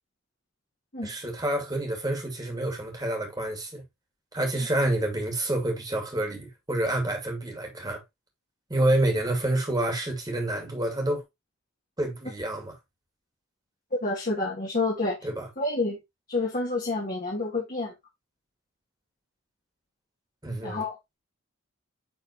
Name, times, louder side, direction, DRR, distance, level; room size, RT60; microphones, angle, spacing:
voice 1, 1.0-3.8 4.3-8.0 8.7-11.2 12.0-12.7 15.2-15.5 20.4-20.8, right 1 dB, 20° right, 2.4 m, -28 dB
voice 2, 14.0-15.2 15.6-16.0 16.3-17.9 20.6-21.0, left 2 dB, 40° left, 2.2 m, -28 dB
9.7 x 4.3 x 3.1 m
head